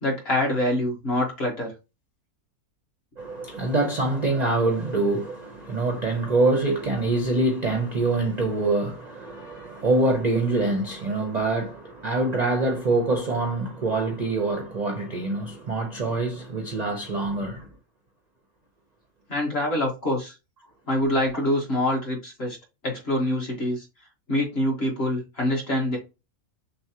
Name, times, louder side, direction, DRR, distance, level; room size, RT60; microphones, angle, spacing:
voice 1, 0.0-1.7 19.3-20.3 20.9-22.6 22.8-23.8 24.3-26.0, left 1 dB, 45° left, 1.7 m, -25 dB
voice 2, 3.2-17.7, right 2 dB, 40° right, 0.6 m, -25 dB
6.1 x 2.1 x 2.9 m
omnidirectional pair, 1.6 m